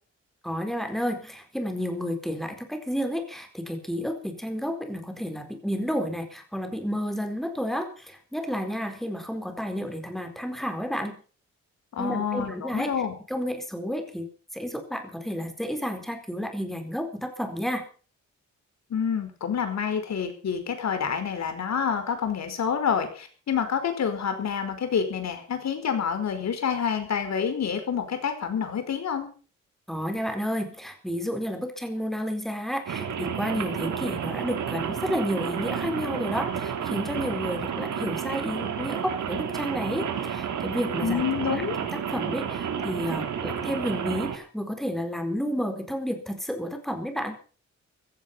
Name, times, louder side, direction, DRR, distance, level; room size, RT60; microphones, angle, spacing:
voice 1, 0.4-11.2 12.0-12.9 13.3-14.3 14.5-17.9 29.9-41.2 41.5-47.4, equal, ahead, 6 dB, 4.5 m, -31 dB
voice 2, 11.9-13.1 18.9-29.3 41.0-41.8, left 7 dB, 65° left, 8 dB, 5.0 m, -28 dB
Rain, 32.9-44.4, right 7 dB, 85° right, 3.2 m, -31 dB
16.5 x 14.5 x 5.6 m, 0.39 s
cardioid pair, 115°, 29 cm